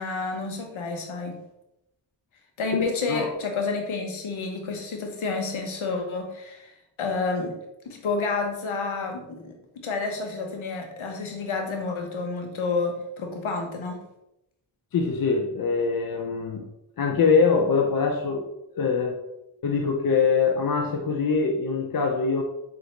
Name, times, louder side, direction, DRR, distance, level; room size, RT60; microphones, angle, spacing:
voice 1, 0.0-1.4 2.6-6.7 7.0-7.5 7.8-9.5 9.8-14.0, left 4 dB, 75° left, 3 dB, 0.9 m, -29 dB
voice 2, 2.8-3.3 14.9-16.7 17.0-18.5 18.7-19.2 19.6-22.4, left 5 dB, 45° left, 3 dB, 0.5 m, -23 dB
3.9 x 2.6 x 3.2 m, 0.87 s
cardioid pair, 45°, 49 cm